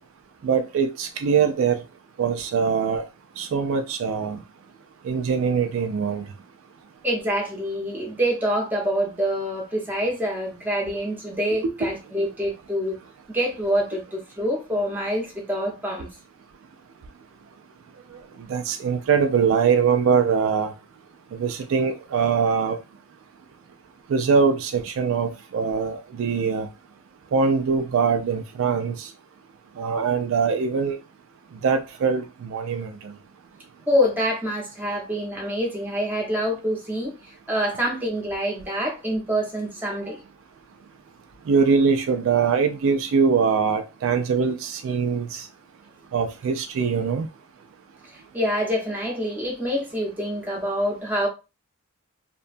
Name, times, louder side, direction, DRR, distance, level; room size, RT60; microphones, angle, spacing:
voice 1, 0.4-1.8 2.2-3.0 3.4-4.4 5.0-6.2 11.6-11.9 18.5-20.7 21.4-22.8 24.1-26.7 27.3-29.1 29.8-31.0 31.6-33.1 41.5-45.4 46.1-47.3, right 5 dB, 65° right, 0.3 m, -22 dB
voice 2, 7.0-13.0 13.3-16.1 33.9-37.1 37.5-40.2 48.1-51.3, equal, 10° right, 0.8 m, -26 dB
2.8 x 2.2 x 2.5 m
head